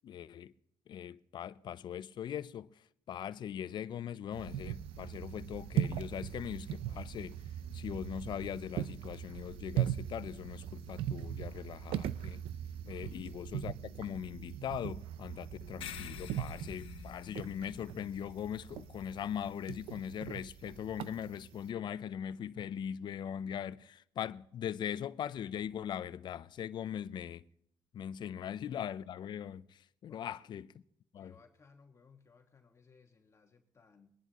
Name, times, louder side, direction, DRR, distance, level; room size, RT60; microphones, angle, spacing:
voice 1, 0.0-0.5 0.9-2.7 3.1-7.4 7.7-12.4 12.9-27.4 27.9-29.7 30.0-30.7 31.1-31.3, left 9 dB, 55° left, 0.6 m, -40 dB
sound 1, 4.3-21.7, right 11 dB, 80° right, 0.6 m, -40 dB
voice 2, 12.9-13.2 30.1-30.5 31.2-34.1, left 5 dB, 30° left, 1.5 m, -63 dB
sound 2, 15.8-20.6, left 7 dB, 75° left, 1.2 m, -49 dB
22.0 x 11.0 x 3.0 m
cardioid pair, 90°, 9 cm